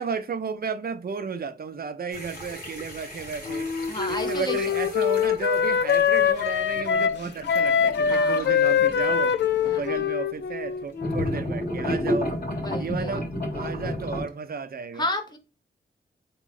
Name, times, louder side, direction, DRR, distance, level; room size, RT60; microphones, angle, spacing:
voice 1, 0.0-3.7 4.1-9.4 9.6-12.3 12.8-13.3 13.5-15.0, right 5 dB, 55° right, 0.6 m, -33 dB
sound 1, 2.1-10.1 11.0-14.2, left 1 dB, 55° left, 2.2 m, -33 dB
Wind instrument woodwind instrument, 3.5-11.5, left 7 dB, 70° left, 0.4 m, -24 dB
voice 2, 3.9-4.7 8.1-8.6 9.6-10.0 12.6-13.2 14.9-15.4, left 1 dB, 25° left, 1.0 m, -32 dB
3.6 x 3.0 x 3.1 m
cardioid pair, 70°, 19 cm